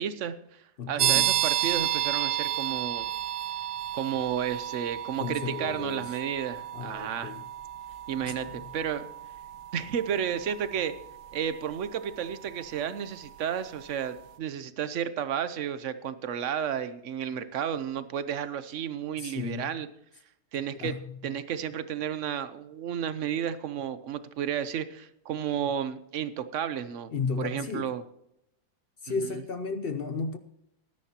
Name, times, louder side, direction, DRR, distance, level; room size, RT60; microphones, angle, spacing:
voice 1, 0.0-3.1 3.9-7.3 8.1-8.5 8.7-9.1 9.7-10.9 11.3-19.9 20.5-20.9 21.2-27.1 27.4-28.0, right 8 dB, 55° right, 1.0 m, -32 dB
voice 2, 0.8-1.3 5.2-6.1 6.7-7.5 8.2-8.6 19.2-19.8 20.7-21.2 27.1-27.9 29.0-30.4, left 4 dB, 55° left, 0.7 m, -34 dB
sound 1, 1.0-13.5, right 12 dB, 85° right, 1.5 m, -32 dB
19.0 x 10.5 x 2.9 m
omnidirectional pair, 1.7 m